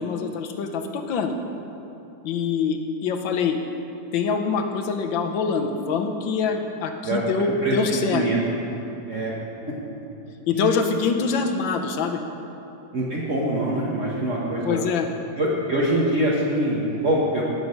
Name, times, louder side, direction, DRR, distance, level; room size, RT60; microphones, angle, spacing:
voice 1, 0.0-1.3 2.2-3.6 4.1-8.2 10.5-12.2 14.6-15.1, left 5 dB, 85° left, 5 dB, 1.6 m, -24 dB
voice 2, 7.6-8.4 9.1-9.3 10.5-10.7 12.9-14.8 15.4-17.4, right 1 dB, 45° right, -6 dB, 1.5 m, -24 dB
17.5 x 6.4 x 5.3 m, 2.8 s
omnidirectional pair, 2.1 m